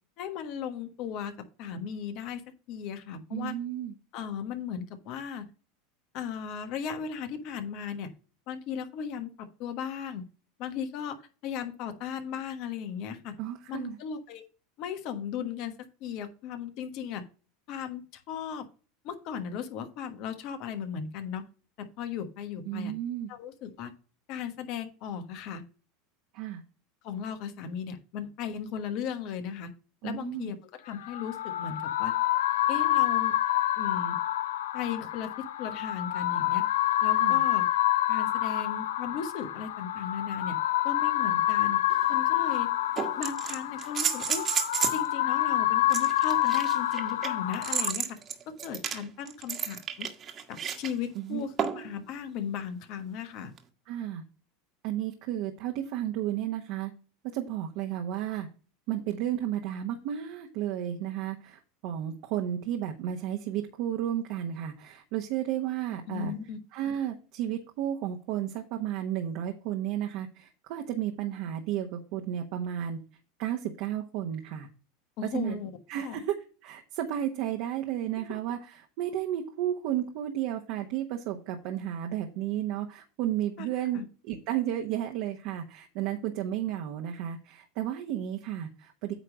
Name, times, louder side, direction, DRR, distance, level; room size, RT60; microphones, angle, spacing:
voice 1, 0.2-2.4 2.7-3.5 4.1-5.5 6.1-8.1 8.5-10.2 10.6-11.2 11.4-13.3 13.7-14.4 14.8-15.7 16.0-17.3 17.7-18.7 19.0-21.4 21.8-22.9 23.3-23.9 24.3-25.6 27.0-29.7 30.0-32.1 32.7-33.3 33.8-34.2 34.7-36.6 37.0-37.7 38.1-40.6 40.8-41.8 42.1-42.7 43.2-44.5 44.9-48.2 48.5-50.1 50.5-53.5 66.1-66.6 75.2-75.7 76.0-76.2 83.6-83.7 83.9-84.1, left 7 dB, 55° left, 8 dB, 1.3 m, -36 dB
voice 2, 3.3-3.9 13.4-14.0 22.6-23.3 26.3-26.6 30.0-30.5 37.2-37.4 51.1-51.4 53.9-54.2 54.8-56.9 57.3-58.5 58.9-66.3 66.7-73.0 73.4-74.7 75.3-75.6 75.9-76.4 76.6-89.1, right 11 dB, 60° right, 2 dB, 1.1 m, -33 dB
sound 1, 30.9-47.9, left 14 dB, 80° left, 0.5 m, -27 dB
sound 2, 41.9-42.0 43.0-45.1 45.9-50.9 51.6-51.9 53.6-53.7, right 8 dB, 35° right, 1.4 m, -32 dB
9.1 x 3.3 x 6.1 m, 0.37 s
hypercardioid pair, 100°, 0 cm